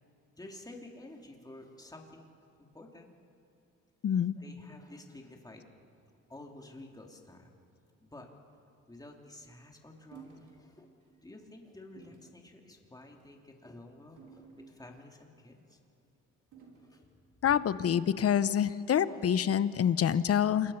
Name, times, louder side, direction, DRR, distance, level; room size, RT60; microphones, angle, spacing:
voice 1, 0.3-2.3 2.7-3.1 4.4-5.6 6.3-7.5 8.0-8.3 8.9-10.9 11.2-15.8 16.7-17.1 17.4-17.5 19.0-20.2, left 2 dB, 10° left, 1 dB, 3.1 m, -51 dB
voice 2, 4.0-4.4 17.4-20.7, left 9 dB, 50° left, 15 dB, 0.9 m, -27 dB
sound 1, 10.1-10.5 11.0-11.2 12.0-12.3 13.1-13.4 14.2-15.1 16.5-17.0, right 6 dB, 80° right, 4.4 m, -54 dB
27.5 x 20.5 x 5.8 m, 2.7 s
cardioid pair, 90°, 30 cm